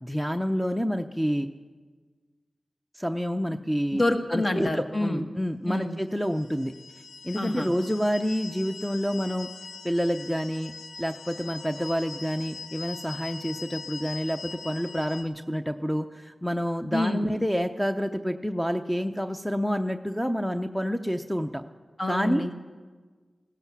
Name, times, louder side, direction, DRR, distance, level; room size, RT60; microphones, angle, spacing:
voice 1, 0.0-1.5 2.9-4.0 4.3-6.7 7.2-9.5 9.8-10.7 11.0-21.6 22.1-22.4, equal, ahead, 7 dB, 0.6 m, -28 dB
voice 2, 3.9-5.2 5.7-6.0 7.3-7.7 16.9-17.3 22.0-22.5, left 1 dB, 40° left, 6 dB, 1.6 m, -27 dB
sound 1, 6.2-15.2, left 4 dB, 85° left, 0.9 m, -42 dB
16.0 x 13.5 x 6.0 m, 1.4 s
cardioid pair, 50°, 0 cm